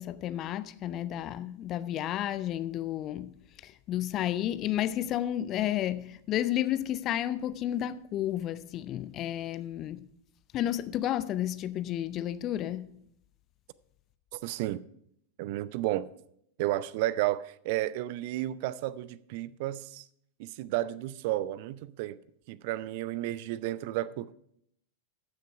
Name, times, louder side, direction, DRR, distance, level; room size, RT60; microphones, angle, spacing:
voice 1, 0.0-3.3 3.6-10.0 10.5-12.9, left 12 dB, 35° left, 0.5 m, -32 dB
voice 2, 14.3-14.8 15.4-16.1 16.6-20.1 20.4-22.2 22.5-24.3, right 15 dB, 50° right, 0.4 m, -32 dB
13.5 x 6.6 x 4.8 m
figure-of-eight pair, 90°, 0 cm